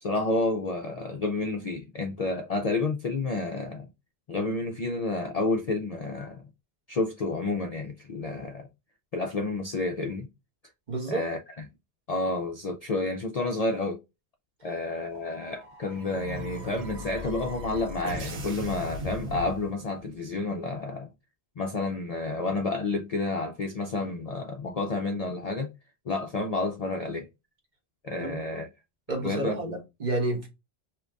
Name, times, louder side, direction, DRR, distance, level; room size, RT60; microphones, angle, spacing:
voice 1, 0.0-3.9 4.3-6.5 6.9-8.7 9.1-10.3 11.1-11.4 12.1-14.0 14.6-21.1 21.6-25.7 26.1-27.3 28.0-28.7 29.2-29.6, left 3 dB, 50° left, 0.4 m, -30 dB
voice 2, 10.9-11.2 28.2-28.4 29.1-30.5, right 2 dB, 45° right, 1.1 m, -30 dB
sound 1, 15.1-20.1, equal, 85° right, 1.1 m, -38 dB
2.8 x 2.5 x 3.4 m
omnidirectional pair, 1.1 m